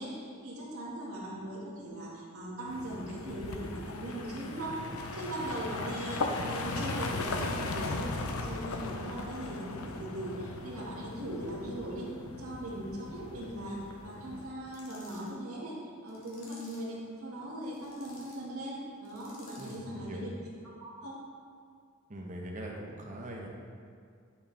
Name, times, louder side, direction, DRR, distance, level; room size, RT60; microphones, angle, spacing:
voice 1, 0.0-12.1 12.4-15.8 16.0-20.3 20.8-21.2, right 1 dB, 85° right, -5 dB, 1.8 m, -40 dB
sound 1, 2.7-14.5, left 3 dB, 80° left, 0.6 m, -38 dB
sound 2, 14.7-15.3 16.1-16.9 17.6-18.4 19.0-19.9, left 2 dB, 65° left, 1.7 m, -55 dB
voice 2, 19.6-20.2 22.1-23.5, right 1 dB, 35° right, -1 dB, 1.0 m, -41 dB
10.0 x 5.2 x 3.3 m, 2.2 s
head